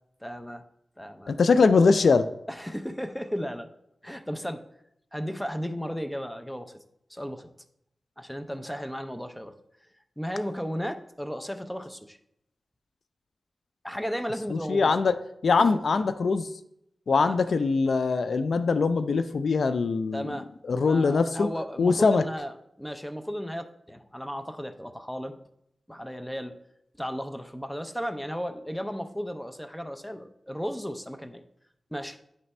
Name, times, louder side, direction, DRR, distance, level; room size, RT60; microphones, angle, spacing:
voice 1, 0.2-0.6 1.0-1.4 2.5-3.7 4.0-4.6 5.1-6.8 7.1-7.5 8.2-9.5 10.2-12.2 13.8-14.9 15.6-15.8 17.1-17.4 20.1-25.4 25.9-26.6 27.0-31.4 31.9-32.2, equal, 5° left, 8 dB, 0.6 m, -34 dB
voice 2, 1.3-2.3 14.5-15.2 15.4-16.5 17.1-20.3 20.7-21.5 21.8-22.2, left 4 dB, 85° left, 11 dB, 0.3 m, -22 dB
9.6 x 3.3 x 4.2 m, 0.77 s
wide cardioid pair, 80°, 0 cm